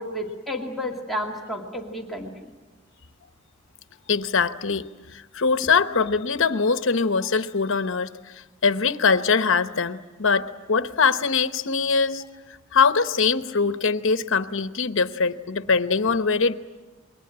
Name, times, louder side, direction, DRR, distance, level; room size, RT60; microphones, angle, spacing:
voice 1, 0.0-2.5, equal, ahead, -1 dB, 2.2 m, -31 dB
voice 2, 4.1-8.1 8.6-12.2 12.7-16.5, left 5 dB, 65° left, 11 dB, 1.0 m, -22 dB
28.0 x 22.5 x 8.8 m, 1.2 s
head